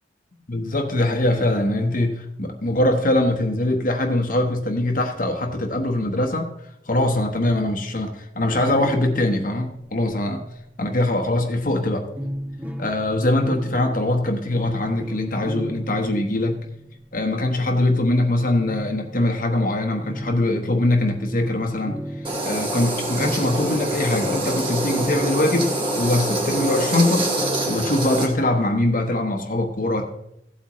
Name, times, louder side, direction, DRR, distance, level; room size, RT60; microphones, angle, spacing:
voice 1, 0.5-6.5 6.9-10.4 10.8-12.1 12.8-16.6 17.1-27.3 27.7-30.0, left 1 dB, 45° left, 4 dB, 1.1 m, -22 dB
sound 1, 8.7-10.8 12.2-17.4 18.6-26.7 27.4-28.4, equal, 10° right, 0.7 m, -35 dB
sound 2, 22.2-28.3, right 1 dB, 30° right, 2.2 m, -25 dB
16.0 x 8.4 x 3.1 m, 0.81 s
head